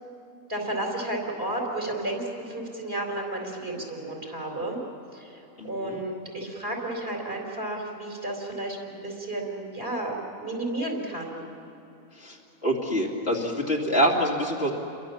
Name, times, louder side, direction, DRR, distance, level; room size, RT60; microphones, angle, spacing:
voice 1, 0.5-4.8 5.1-11.4, right 1 dB, 45° right, 0 dB, 4.4 m, -32 dB
voice 2, 5.6-6.0 12.2-12.4 12.6-14.7, equal, 50° left, -2 dB, 3.0 m, -25 dB
30.0 x 23.0 x 7.2 m, 2.9 s
omnidirectional pair, 1.4 m